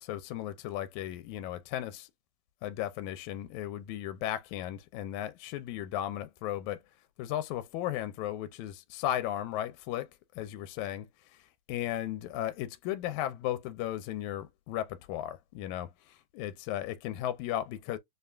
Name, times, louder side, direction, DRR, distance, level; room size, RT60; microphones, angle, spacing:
voice 1, 0.0-2.1 2.6-6.8 7.2-10.1 10.4-11.1 11.7-18.0, left 12 dB, 85° left, 1.9 m, -35 dB
5.2 x 2.2 x 2.3 m
omnidirectional pair, 3.4 m